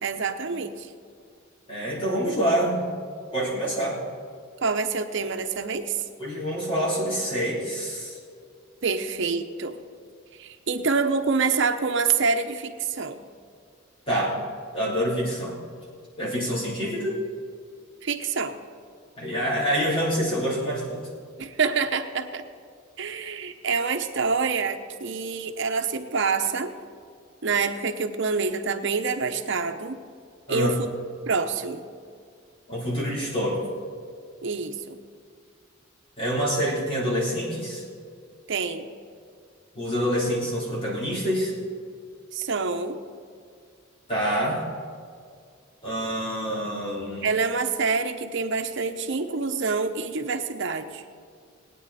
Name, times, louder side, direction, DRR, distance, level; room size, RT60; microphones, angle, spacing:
voice 1, 0.0-0.9 4.6-6.0 8.8-9.8 10.4-13.2 18.0-18.5 21.4-22.4 23.0-26.7 27.4-30.0 30.5-30.9 31.3-31.8 34.4-35.0 38.5-38.8 42.3-43.0 47.2-51.0, right 4 dB, 60° right, 7 dB, 0.9 m, -26 dB
voice 2, 1.7-2.9 3.3-4.0 6.2-8.2 14.1-14.4 14.7-15.6 16.2-17.2 19.2-21.1 30.5-30.7 32.7-33.7 36.2-37.8 39.8-41.5 44.1-44.6 45.8-47.4, equal, 25° left, -7 dB, 3.6 m, -26 dB
20.5 x 9.4 x 4.2 m, 2.2 s
head